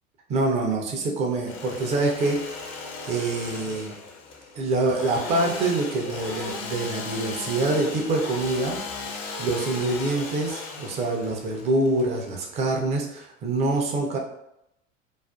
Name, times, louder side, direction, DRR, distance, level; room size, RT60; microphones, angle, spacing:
voice 1, 0.3-2.7 3.1-4.0 4.6-8.8 9.4-14.2, right 2 dB, 20° right, 0 dB, 0.3 m, -25 dB
Engine / Sawing, 1.3-12.9, left 4 dB, 40° left, 0.5 m, -37 dB
2.4 x 2.3 x 2.2 m, 0.81 s
figure-of-eight pair, 80°, 39 cm